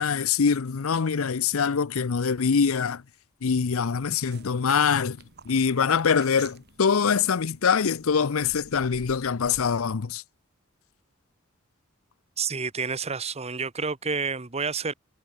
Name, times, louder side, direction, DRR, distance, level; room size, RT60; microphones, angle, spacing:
voice 1, 0.0-3.0 3.4-5.2 5.5-10.2, left 6 dB, 75° left, 0.6 m, -24 dB
sound 1, 3.4-9.8, right 4 dB, 50° right, 2.8 m, -51 dB
voice 2, 12.4-14.9, right 5 dB, 30° right, 1.3 m, -29 dB
head